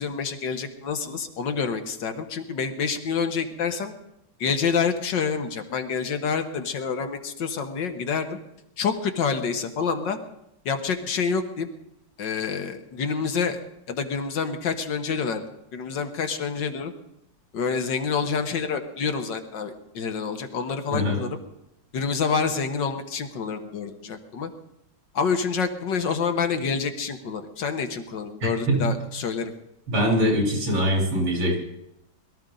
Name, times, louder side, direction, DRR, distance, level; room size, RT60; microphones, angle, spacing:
voice 1, 0.0-4.0 4.4-8.4 8.8-10.2 10.7-11.7 12.2-13.6 13.9-15.4 15.7-16.9 17.5-21.4 21.9-24.5 25.1-29.5, left 5 dB, 65° left, 7 dB, 1.8 m, -27 dB
voice 2, 28.4-28.9 29.9-31.6, equal, 80° right, -1 dB, 4.6 m, -23 dB
22.0 x 14.0 x 3.9 m, 0.84 s
omnidirectional pair, 2.2 m